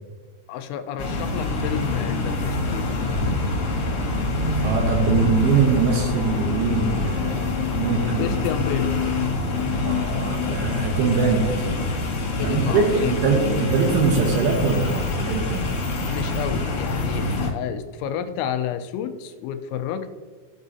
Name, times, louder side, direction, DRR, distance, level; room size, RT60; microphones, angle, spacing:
voice 1, 0.5-3.0 8.2-9.0 12.4-13.2 16.1-20.1, left 9 dB, 90° left, 9 dB, 3.0 m, -30 dB
sound 1, 1.0-17.5, left 3 dB, 55° left, 2.0 m, -25 dB
voice 2, 4.6-8.4 9.8-11.8 12.4-15.7, right 5 dB, 75° right, 1 dB, 2.5 m, -22 dB
15.0 x 5.3 x 2.7 m, 1.5 s
omnidirectional pair, 5.1 m